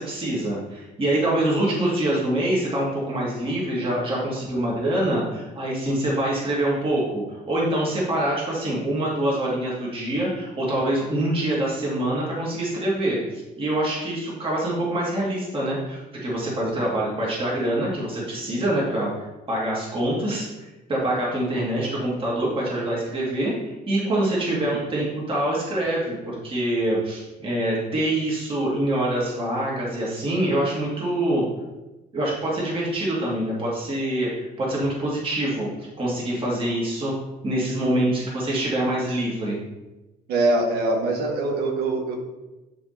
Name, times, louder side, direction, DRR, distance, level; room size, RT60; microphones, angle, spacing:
voice 1, 0.0-20.5 20.9-23.5 23.9-31.4 32.1-35.7 36.0-37.1 37.4-39.6, right 1 dB, 30° right, -5 dB, 2.8 m, -25 dB
voice 2, 40.3-42.2, right 2 dB, 70° right, 0 dB, 1.8 m, -23 dB
11.0 x 3.8 x 4.4 m, 1.1 s
cardioid pair, 110°, 17 cm